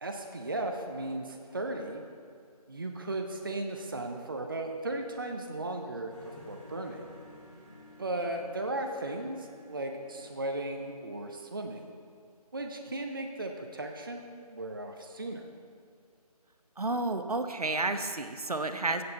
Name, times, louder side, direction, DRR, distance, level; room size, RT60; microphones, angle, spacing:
voice 1, 0.0-2.0 2.7-7.0 8.0-11.9 12.5-15.4, right 2 dB, 35° right, 4 dB, 0.6 m, -36 dB
sound 1, 6.1-11.7, left 1 dB, 10° right, 2.2 m, -54 dB
voice 2, 16.8-19.0, right 2 dB, 65° right, 8 dB, 0.8 m, -31 dB
15.5 x 7.0 x 4.0 m, 2.2 s
figure-of-eight pair, 160°, 20 cm